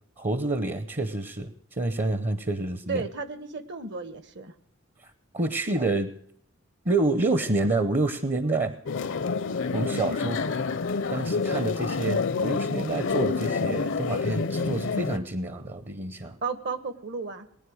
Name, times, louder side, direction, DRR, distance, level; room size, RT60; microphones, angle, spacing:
voice 1, 0.2-3.0 5.3-6.1 6.8-8.8 9.7-10.5 11.1-16.4, right 2 dB, 35° right, 12 dB, 0.7 m, -28 dB
voice 2, 2.9-4.5 16.4-17.5, right 4 dB, 60° right, 14 dB, 1.1 m, -33 dB
sound 1, 8.9-15.2, left 4 dB, 65° left, 0.6 m, -28 dB
19.5 x 9.6 x 6.3 m, 0.69 s
head